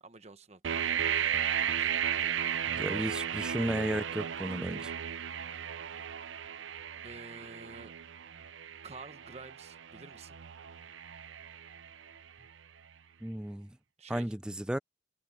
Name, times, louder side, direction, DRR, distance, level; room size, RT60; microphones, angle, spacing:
voice 1, 0.0-2.5 7.0-7.9 8.8-10.4 14.0-14.4, right 3 dB, 35° right, 1.1 m, -51 dB
sound 1, 0.6-12.4, right 9 dB, 75° right, 0.6 m, -35 dB
voice 2, 2.8-4.9 13.2-13.8 14.1-14.8, right 1 dB, 5° right, 0.3 m, -34 dB
head